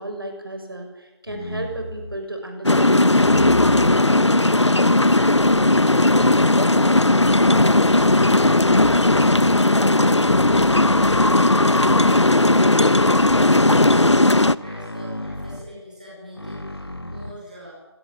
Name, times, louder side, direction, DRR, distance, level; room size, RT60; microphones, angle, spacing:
voice 1, 0.0-4.3, right 1 dB, 55° right, 4 dB, 7.3 m, -34 dB
sound 1, 1.3-2.3 3.2-4.1 5.0-5.8 6.4-7.8 8.5-9.6 10.2-12.1 12.9-14.0 14.6-15.7 16.3-17.3, left 1 dB, 60° left, 2.5 m, -33 dB
sound 2, 2.6-14.5, left 2 dB, 85° left, 1.0 m, -16 dB
voice 2, 8.9-9.8 10.4-11.2 14.6-17.8, equal, 15° right, -4 dB, 5.1 m, -42 dB
27.5 x 18.0 x 9.0 m, 1.1 s
figure-of-eight pair, 175°, 15 cm